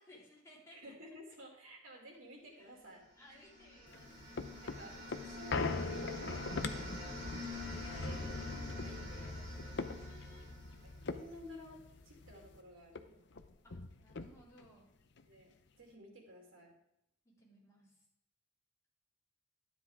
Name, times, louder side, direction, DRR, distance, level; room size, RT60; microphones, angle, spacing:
voice 1, 0.0-0.8 2.6-2.8 3.1-4.1 9.8-10.6 13.6-14.9 17.2-18.0, equal, 15° left, -7 dB, 4.1 m, -61 dB
voice 2, 0.7-3.4 4.6-4.9 5.3-6.3 6.7-7.3 7.7-9.4 10.8-13.1 15.3-15.5 15.8-16.7, equal, 85° right, -2 dB, 2.9 m, -54 dB
sound 1, 3.2-11.2, left 2 dB, 40° right, 3.0 m, -47 dB
sound 2, 3.9-12.6 12.9-13.0 13.3-14.7 15.2-15.3, left 3 dB, 60° left, 0.7 m, -41 dB
12.5 x 10.0 x 3.6 m, 0.77 s
head